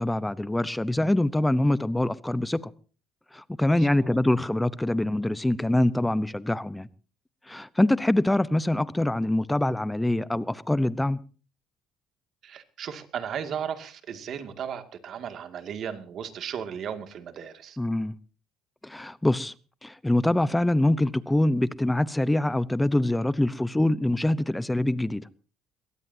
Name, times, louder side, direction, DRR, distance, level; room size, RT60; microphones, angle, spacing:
voice 1, 0.0-2.7 3.3-6.9 7.5-11.2 17.8-18.1 18.8-19.5 19.8-25.2, left 1 dB, 5° left, 0.8 m, -24 dB
voice 2, 3.7-4.2 12.4-17.8, right 8 dB, 50° right, 2.2 m, -36 dB
22.5 x 17.5 x 2.8 m
cardioid pair, 120°, 0 cm